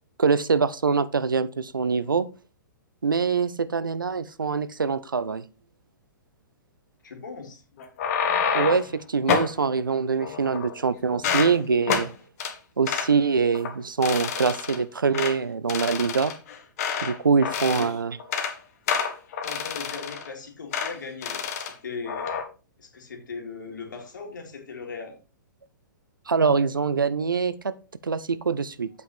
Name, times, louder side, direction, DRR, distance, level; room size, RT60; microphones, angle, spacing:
voice 1, 0.2-2.3 3.0-5.4 8.5-12.1 12.8-16.3 17.0-18.2 26.3-27.7 28.0-28.9, right 5 dB, 80° right, 16 dB, 0.6 m, -24 dB
voice 2, 7.0-7.6 17.7-17.9 19.4-22.3 22.8-25.2, left 4 dB, 65° left, 3 dB, 2.7 m, -38 dB
sound 1, 7.8-8.9 9.3-9.5 10.2-10.8 11.1-11.5 11.9-12.1 12.4-12.5 12.9-13.1 13.5-13.7 14.0-14.8 15.1-15.3 15.7-17.1 17.4-17.9 18.2-18.5 18.9-20.3 20.7-20.9 21.2-21.7 22.1-22.4, left 6 dB, 50° left, 1.5 m, -28 dB
8.1 x 5.7 x 4.2 m, 0.33 s
figure-of-eight pair, 110°, 11 cm